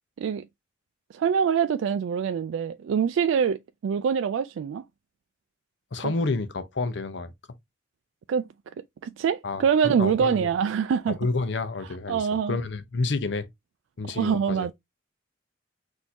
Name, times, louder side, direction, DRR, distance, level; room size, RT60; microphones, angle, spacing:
voice 1, 1.1-4.8 6.0-6.1 8.3-8.4 9.0-11.2 12.1-12.6 14.0-14.7, right 7 dB, 90° right, 0.3 m, -25 dB
voice 2, 5.9-7.3 9.4-10.5 11.1-13.5 14.0-14.7, left 3 dB, 70° left, 0.7 m, -29 dB
6.2 x 2.7 x 2.7 m
head